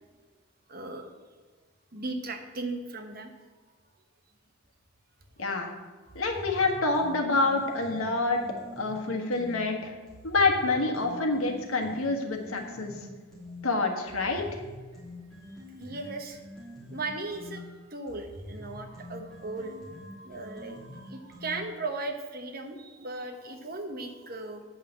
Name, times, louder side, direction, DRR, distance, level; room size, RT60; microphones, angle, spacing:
voice 1, 0.7-1.1 1.9-3.4 6.1-6.2 12.9-13.0 15.5-16.4 16.9-17.6 17.9-24.7, right 2 dB, 45° right, 5 dB, 1.1 m, -37 dB
voice 2, 5.4-5.7 6.1-8.4 8.8-9.9 10.2-12.9 13.6-14.6, left 3 dB, 85° left, 3 dB, 1.5 m, -27 dB
sound 1, 6.1-9.6 10.1-13.6 14.1-21.9, left 1 dB, ahead, 3.2 m, -46 dB
8.6 x 5.6 x 7.4 m, 1.4 s
head